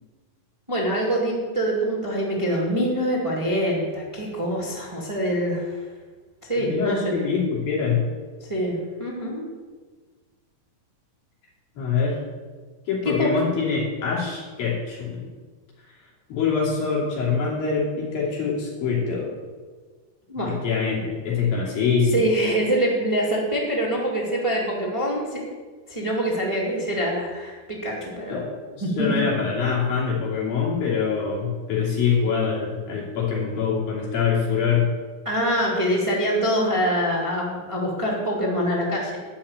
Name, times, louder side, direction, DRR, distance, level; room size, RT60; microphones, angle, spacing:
voice 1, 0.7-5.8 6.4-7.1 8.5-9.4 13.0-13.3 20.3-20.6 22.1-25.4 25.9-28.4 28.8-29.2 35.2-39.2, equal, 10° right, -4 dB, 1.8 m, -24 dB
voice 2, 6.6-8.1 11.8-12.2 12.9-15.2 16.3-19.3 20.5-22.2 28.3-28.5 28.7-34.9, left 5 dB, 85° left, -4 dB, 4.7 m, -24 dB
12.0 x 5.8 x 8.9 m, 1.4 s
omnidirectional pair, 4.0 m